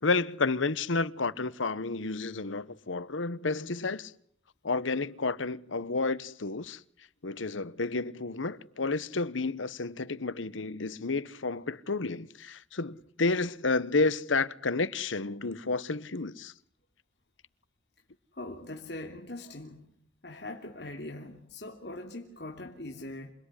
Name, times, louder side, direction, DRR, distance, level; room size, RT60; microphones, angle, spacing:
voice 1, 0.0-4.1 4.6-6.8 7.2-16.5, left 3 dB, 85° left, 1.1 m, -31 dB
voice 2, 18.3-20.0 20.2-23.3, left 2 dB, 60° left, 3.1 m, -41 dB
28.0 x 20.5 x 9.9 m
head